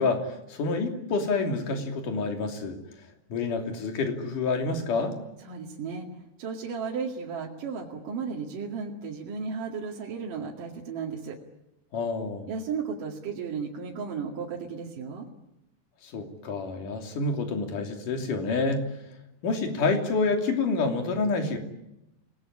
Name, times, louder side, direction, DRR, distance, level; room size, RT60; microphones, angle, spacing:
voice 1, 0.0-2.8 3.3-5.2 11.9-12.5 16.0-18.9 19.4-21.6, left 3 dB, 55° left, 4 dB, 4.3 m, -28 dB
voice 2, 5.4-11.4 12.5-15.3, right 5 dB, 55° right, -2 dB, 3.6 m, -34 dB
28.5 x 20.0 x 9.9 m, 0.91 s
omnidirectional pair, 4.7 m